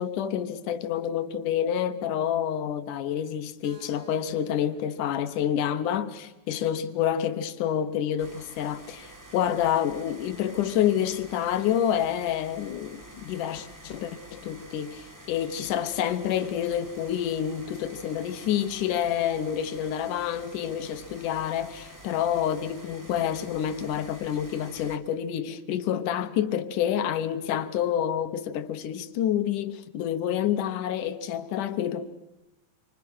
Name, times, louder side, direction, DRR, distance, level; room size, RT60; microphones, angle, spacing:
voice 1, 0.0-32.0, left 10 dB, 80° left, 2.6 m, -28 dB
Keyboard (musical), 3.6-7.5, right 1 dB, 50° right, 4.4 m, -55 dB
sound 1, 8.2-25.0, right 1 dB, 10° right, 0.8 m, -48 dB
29.0 x 24.5 x 6.2 m
omnidirectional pair, 3.6 m